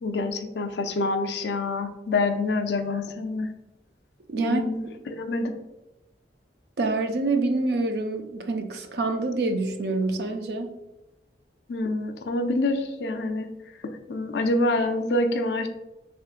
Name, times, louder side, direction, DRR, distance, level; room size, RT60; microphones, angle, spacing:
voice 1, 0.0-3.5 4.4-5.5 11.7-13.5 13.8-15.7, left 2 dB, 70° left, 6 dB, 0.4 m, -26 dB
voice 2, 4.3-4.9 6.8-10.7, right 2 dB, 65° right, 6 dB, 0.4 m, -26 dB
3.5 x 3.5 x 2.4 m, 0.99 s
head